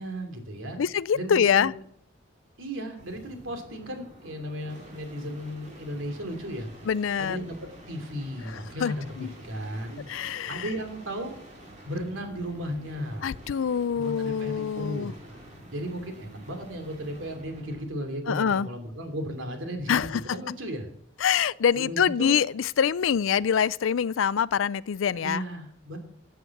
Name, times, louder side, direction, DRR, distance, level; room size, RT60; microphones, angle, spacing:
voice 1, 0.0-0.8 1.1-1.7 2.6-6.7 7.2-7.6 7.9-10.0 10.5-11.3 11.8-13.3 13.9-15.1 15.7-20.9 21.7-22.4 25.2-26.0, equal, 85° right, 2.8 m, -35 dB
voice 2, 0.8-1.7 6.9-7.4 8.4-9.3 10.1-10.7 13.2-15.1 18.3-18.7 19.9-20.4 21.2-25.5, left 7 dB, 85° left, 0.4 m, -25 dB
sound 1, 2.9-17.9 19.7-20.2, right 1 dB, 35° right, 3.2 m, -48 dB
14.5 x 7.8 x 7.2 m
head